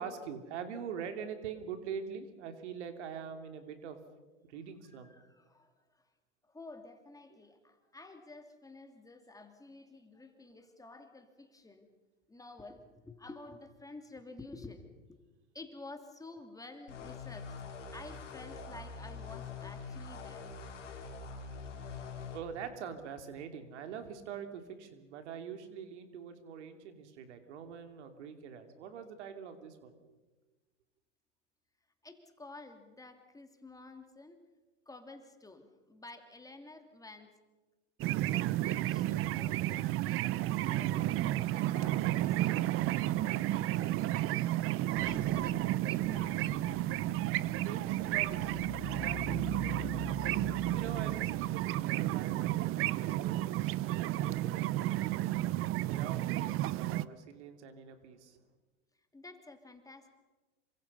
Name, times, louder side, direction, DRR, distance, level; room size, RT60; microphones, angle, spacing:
voice 1, 0.0-4.0 4.4-5.1 22.0-29.9 47.5-50.1 50.7-55.4 55.8-58.4, right 7 dB, 70° right, 7 dB, 2.9 m, -44 dB
voice 2, 4.8-6.1 6.4-11.9 12.3-15.2 15.5-17.6 17.9-20.5 32.0-34.4 34.9-37.3 38.1-44.6 45.0-46.4 59.1-60.1, left 2 dB, 10° left, 6 dB, 2.8 m, -51 dB
sound 1, 16.9-22.4, left 4 dB, 90° left, 3.6 m, -44 dB
sound 2, 38.0-57.1, right 15 dB, 40° right, 0.7 m, -32 dB
sound 3, 44.9-51.6, left 7 dB, 60° left, 4.6 m, -47 dB
27.5 x 25.0 x 5.5 m, 1.2 s
hypercardioid pair, 100°, 35 cm